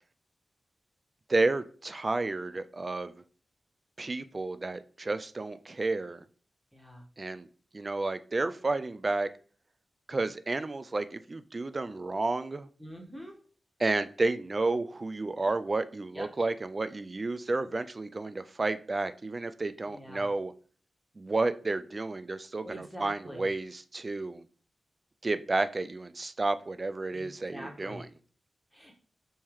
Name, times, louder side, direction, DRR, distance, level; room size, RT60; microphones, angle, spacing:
voice 1, 1.3-3.2 4.0-6.2 7.2-7.5 7.7-9.3 10.1-12.7 13.8-20.5 21.2-24.5 25.2-28.1, right 3 dB, 35° right, 12 dB, 0.3 m, -31 dB
voice 2, 12.8-13.3 16.1-16.2 19.9-20.2 22.6-23.4 27.1-28.0 28.7-28.9, equal, ahead, -1 dB, 1.4 m, -44 dB
5.5 x 2.8 x 3.1 m, 0.43 s
cardioid pair, 70°, 0 cm